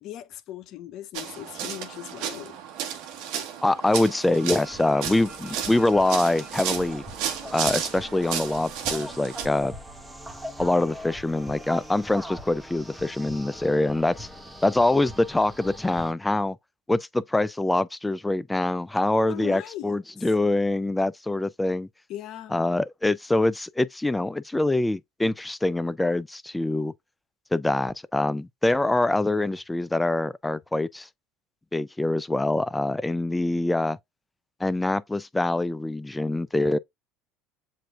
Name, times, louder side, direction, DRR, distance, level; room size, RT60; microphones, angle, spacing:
voice 1, 0.0-2.6 5.1-5.3 19.3-20.3 22.1-22.6, left 13 dB, 60° left, 0.7 m, -39 dB
sound 1, 1.1-9.5, right 8 dB, 70° right, 1.1 m, -33 dB
voice 2, 3.6-7.0 7.5-9.7 10.6-14.3 14.6-16.6 16.9-21.9 22.5-26.9 27.5-31.1 31.7-34.0 34.6-36.8, left 2 dB, 10° left, 0.3 m, -24 dB
sound 2, 4.5-16.1, equal, 5° right, 1.2 m, -42 dB
7.5 x 2.6 x 2.4 m
hypercardioid pair, 80°, 0 cm